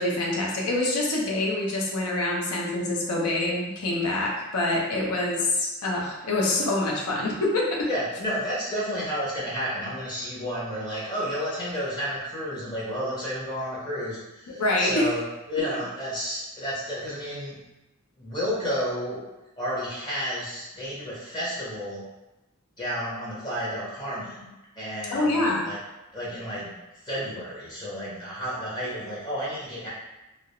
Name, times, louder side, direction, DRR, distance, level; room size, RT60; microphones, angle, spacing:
voice 1, 0.0-7.9 14.6-15.1 25.1-25.6, left 2 dB, 90° left, -2 dB, 0.6 m, -25 dB
voice 2, 7.8-17.6 18.2-19.2 19.6-22.0 22.8-24.5 24.8-25.8 26.1-26.8 27.0-29.9, equal, 20° left, -7 dB, 0.5 m, -31 dB
2.3 x 2.0 x 2.8 m, 1.0 s
head